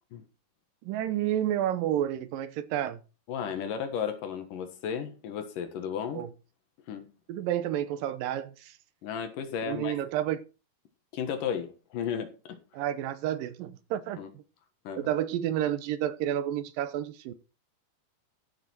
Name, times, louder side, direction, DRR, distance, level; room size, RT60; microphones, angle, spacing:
voice 1, 0.8-3.0 6.2-6.3 7.3-8.8 9.6-10.4 12.7-14.4 15.0-17.3, right 11 dB, 90° right, 2.7 m, -30 dB
voice 2, 3.3-6.2 6.9-7.1 9.0-10.0 11.1-12.5 14.2-14.3 14.8-15.1, left 7 dB, 80° left, 3.1 m, -34 dB
14.0 x 6.5 x 4.5 m
omnidirectional pair, 3.8 m